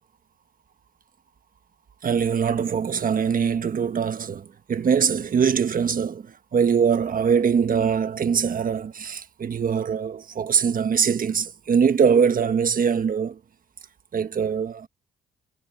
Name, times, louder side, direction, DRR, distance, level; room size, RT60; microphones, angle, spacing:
voice 1, 2.0-13.4 14.1-14.9, right 7 dB, 45° right, 1.4 m, -22 dB
cardioid pair, 90°, 20 cm